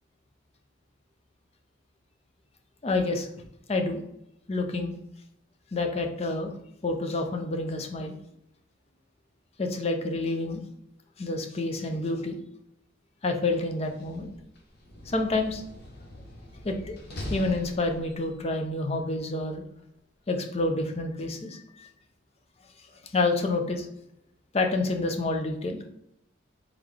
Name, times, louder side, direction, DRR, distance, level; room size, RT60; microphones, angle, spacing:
voice 1, 2.8-3.3 3.7-4.0 4.5-4.9 5.7-6.5 6.8-8.1 9.6-10.6 11.2-12.4 13.2-14.3 15.1-15.6 16.6-17.0 17.3-19.6 20.3-21.9 22.8-22.9 23.1-23.9 24.5-25.9, left 2 dB, 30° left, 4 dB, 0.5 m, -28 dB
Slam, 13.7-18.4, left 1 dB, 50° left, 0.9 m, -42 dB
3.7 x 3.5 x 3.3 m, 0.79 s
head